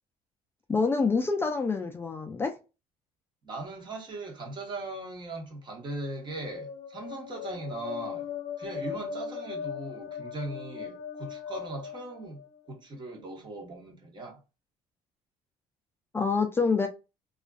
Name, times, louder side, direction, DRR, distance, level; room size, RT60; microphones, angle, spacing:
voice 1, 0.7-2.6 16.1-16.9, left 4 dB, 20° left, 0.4 m, -26 dB
voice 2, 3.4-8.3 8.6-12.4 12.7-14.4, right 2 dB, 35° right, 1.1 m, -39 dB
sound 1, 5.9-12.7, left 7 dB, 65° left, 0.6 m, -39 dB
2.4 x 2.3 x 2.3 m
cardioid pair, 95°, 13 cm